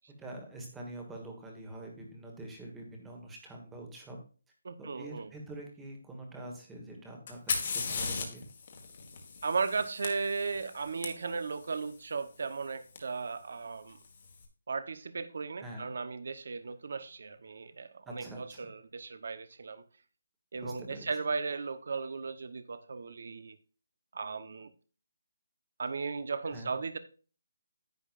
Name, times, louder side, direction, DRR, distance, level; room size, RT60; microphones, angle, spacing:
voice 1, 0.2-4.2 4.8-8.4 15.6-15.9 18.0-18.7 20.5-21.1 26.5-26.7, right 1 dB, 5° right, 1 dB, 1.5 m, -45 dB
voice 2, 4.6-5.3 9.4-14.0 14.7-19.8 20.5-23.6 24.1-24.7 25.8-27.0, right 4 dB, 50° right, 13 dB, 1.0 m, -36 dB
Fire, 7.3-11.1 13.0-13.1 13.9-14.3, left 5 dB, 30° left, 1.7 m, -37 dB
10.5 x 8.8 x 2.5 m, 0.37 s
hypercardioid pair, 175°, 0 cm